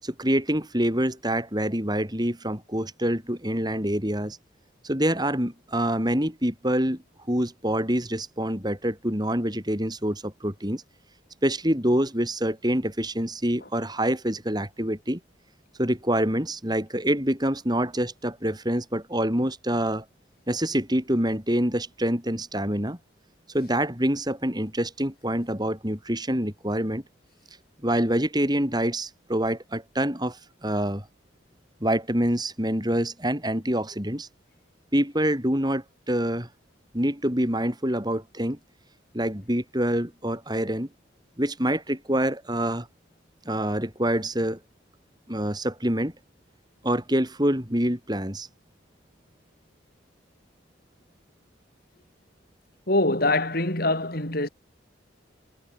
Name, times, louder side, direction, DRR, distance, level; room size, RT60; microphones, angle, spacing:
voice 1, 0.0-4.4 4.8-7.0 7.3-10.8 11.4-15.2 15.8-20.0 20.5-23.0 23.5-27.0 27.8-31.1 31.8-34.3 34.9-36.5 36.9-38.6 39.1-40.9 41.4-42.9 43.4-44.6 45.3-46.1 46.8-48.5, right 1 dB, 20° right, 7.9 m, -26 dB
voice 2, 52.9-54.5, left 2 dB, 50° left, 5.7 m, -24 dB
head